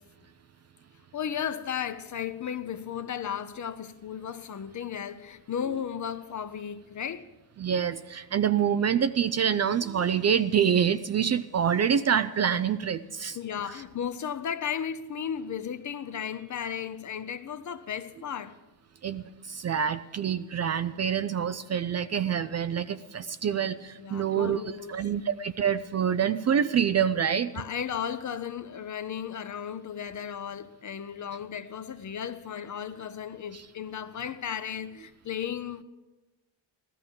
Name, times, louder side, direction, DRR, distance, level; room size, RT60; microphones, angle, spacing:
voice 1, 1.1-7.3 13.3-18.6 24.0-25.0 27.5-35.8, left 8 dB, 40° left, 0.8 m, -35 dB
voice 2, 7.6-13.4 19.0-24.6 24.9-27.5 33.5-33.6, right 8 dB, 35° right, 0.4 m, -26 dB
14.0 x 14.0 x 5.3 m
cardioid pair, 115°, 46 cm